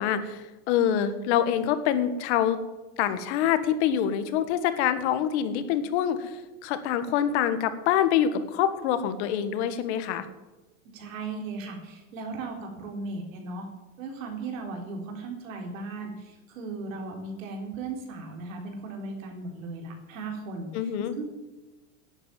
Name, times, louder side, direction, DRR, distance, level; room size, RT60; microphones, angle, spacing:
voice 1, 0.0-2.6 3.0-10.3 20.7-21.2, left 9 dB, 55° left, 11 dB, 1.6 m, -26 dB
voice 2, 10.9-13.7 14.0-21.2, right 3 dB, 75° right, 2 dB, 4.0 m, -37 dB
11.0 x 9.3 x 9.1 m, 1.1 s
supercardioid pair, 150°, 40 cm